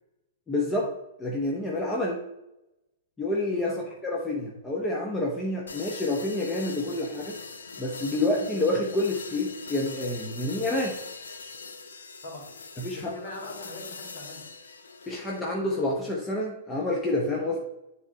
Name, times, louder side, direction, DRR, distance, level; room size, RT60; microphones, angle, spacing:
voice 1, 0.5-0.9 1.2-2.2 3.2-3.8 4.0-7.4 7.8-11.0 12.8-13.1 15.1-17.6, left 2 dB, 15° left, -2 dB, 1.1 m, -28 dB
sound 1, 5.7-15.5, left 4 dB, 70° left, 0.8 m, -42 dB
voice 2, 12.9-14.5, left 2 dB, 50° left, -1 dB, 2.8 m, -41 dB
10.0 x 3.6 x 4.1 m, 0.89 s
figure-of-eight pair, 105°, 0 cm